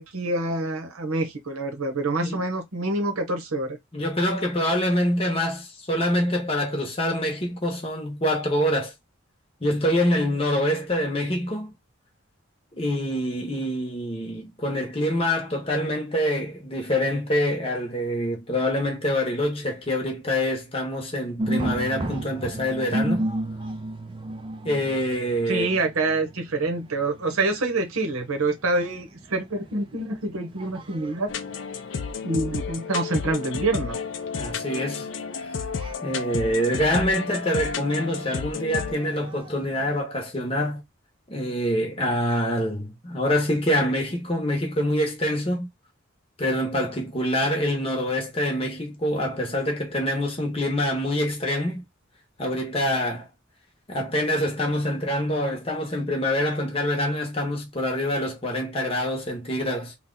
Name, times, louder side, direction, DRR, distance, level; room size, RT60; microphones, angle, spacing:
voice 1, 0.0-3.8 25.5-31.3 32.2-34.0, right 2 dB, 85° right, 0.9 m, -26 dB
voice 2, 3.9-8.9 9.6-11.7 12.7-23.3 24.6-25.7 34.3-35.1 36.0-40.8 41.3-45.7 46.4-51.8 52.4-53.3 53.9-60.0, equal, 25° left, 0.9 m, -25 dB
sound 1, 21.4-40.0, right 1 dB, 25° right, 0.4 m, -35 dB
sound 2, 31.3-39.0, left 5 dB, 60° left, 0.4 m, -32 dB
2.9 x 2.3 x 3.7 m
head